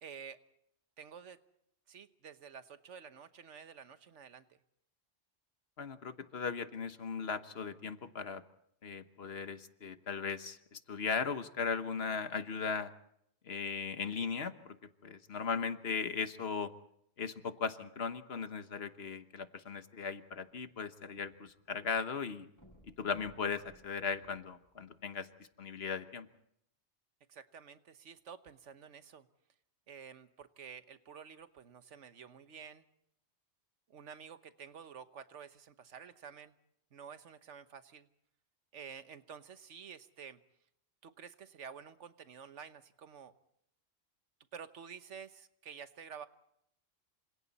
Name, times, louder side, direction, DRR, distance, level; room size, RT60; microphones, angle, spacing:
voice 1, 0.0-0.4 1.0-1.4 1.9-4.6 27.3-29.3 29.9-32.8 33.9-36.5 36.9-38.1 38.7-40.4 41.0-43.3 44.5-46.3, right 7 dB, 90° right, 11 dB, 1.4 m, -50 dB
voice 2, 5.8-8.4 8.8-12.9 13.4-14.8 15.0-16.7 17.2-22.5 23.0-25.3 25.6-26.3, left 5 dB, 60° left, 10 dB, 1.4 m, -38 dB
sound 1, 20.3-21.7 22.0-22.1 22.5-25.1 25.8-25.9, equal, 15° left, 6.0 m, -63 dB
28.0 x 26.0 x 4.2 m, 0.75 s
omnidirectional pair, 1.2 m